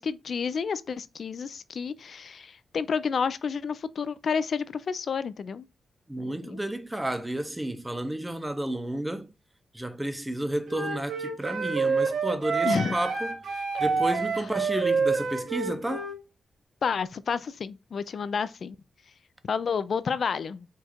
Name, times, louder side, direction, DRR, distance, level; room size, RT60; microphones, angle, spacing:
voice 1, 0.0-5.7 6.2-6.6 12.6-13.0 16.8-18.8 19.4-20.7, left 6 dB, 55° left, 0.3 m, -30 dB
voice 2, 6.1-9.3 9.7-16.1, right 1 dB, 10° right, 0.5 m, -32 dB
Wind instrument woodwind instrument, 10.7-16.2, right 4 dB, 80° right, 1.0 m, -27 dB
4.5 x 2.4 x 4.3 m
wide cardioid pair, 145°, 0 cm